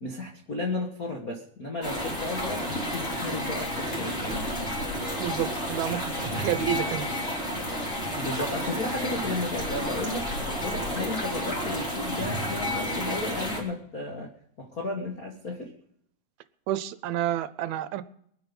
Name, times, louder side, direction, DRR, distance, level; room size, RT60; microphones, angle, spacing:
voice 1, 0.0-4.5 8.2-14.3 14.6-15.7, left 2 dB, 70° left, 0 dB, 0.8 m, -34 dB
sound 1, 1.8-13.6, left 1 dB, 20° left, 3.2 m, -31 dB
voice 2, 5.2-7.1 16.7-18.0, right 12 dB, 80° right, 13 dB, 2.5 m, -29 dB
22.0 x 9.7 x 5.4 m, 0.68 s
omnidirectional pair, 4.4 m